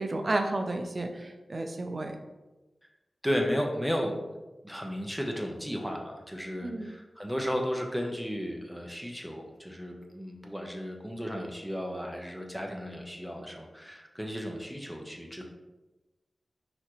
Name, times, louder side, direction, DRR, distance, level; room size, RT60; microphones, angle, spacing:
voice 1, 0.0-2.1 6.6-6.9, right 2 dB, 55° right, 4 dB, 0.6 m, -32 dB
voice 2, 3.2-4.2 4.6-15.5, equal, ahead, 1 dB, 0.9 m, -34 dB
5.6 x 3.0 x 3.1 m, 1.1 s
cardioid pair, 45°, 0 cm